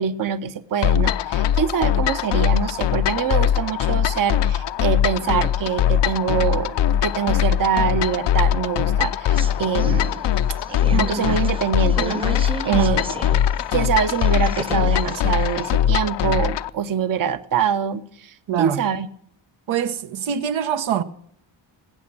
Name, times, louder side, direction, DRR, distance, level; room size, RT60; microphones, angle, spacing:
voice 1, 0.0-10.2 10.7-13.2 13.7-19.1, right 8 dB, 45° right, 0.8 m, -24 dB
sound 1, 0.8-16.7, left 10 dB, 65° left, 0.7 m, -21 dB
sound 2, 9.3-13.5 13.8-15.7, right 1 dB, 10° right, 0.8 m, -33 dB
voice 2, 12.7-13.0 18.5-18.8 19.7-21.0, right 9 dB, 80° right, 1.1 m, -23 dB
20.0 x 8.6 x 6.1 m
cardioid pair, 115°, 46 cm